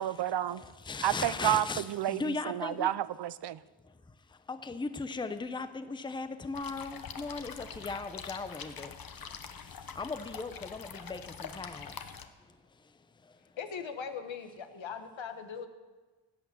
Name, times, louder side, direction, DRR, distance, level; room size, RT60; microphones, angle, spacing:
voice 1, 0.0-0.6 1.0-3.6, right 11 dB, 60° right, 0.5 m, -30 dB
voice 2, 0.5-2.9 3.8-13.6, left 3 dB, 10° left, 0.6 m, -39 dB
sound 1, 6.5-12.3, left 7 dB, 50° left, 1.0 m, -45 dB
voice 3, 13.6-15.7, left 6 dB, 70° left, 1.4 m, -40 dB
17.5 x 8.4 x 6.9 m
wide cardioid pair, 135°, 47 cm